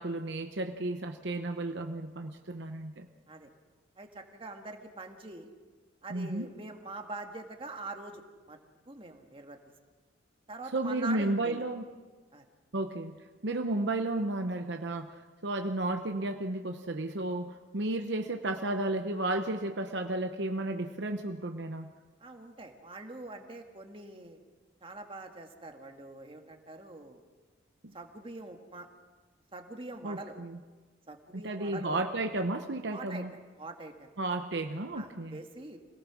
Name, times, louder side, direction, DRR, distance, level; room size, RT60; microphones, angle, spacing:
voice 1, 0.0-3.1 6.1-6.5 10.7-11.9 12.7-13.2 13.4-21.9 30.0-30.6 31.3-33.3 34.2-35.4, right 2 dB, 60° right, 5 dB, 0.9 m, -33 dB
voice 2, 4.0-5.5 6.0-8.6 8.9-9.6 10.5-11.6 12.3-12.4 22.2-24.4 24.8-27.2 27.9-28.9 29.5-30.3 31.1-32.0 32.9-33.3 33.6-34.2 34.9-35.8, right 2 dB, 30° right, 4 dB, 1.8 m, -44 dB
26.0 x 18.0 x 6.2 m, 1.3 s
head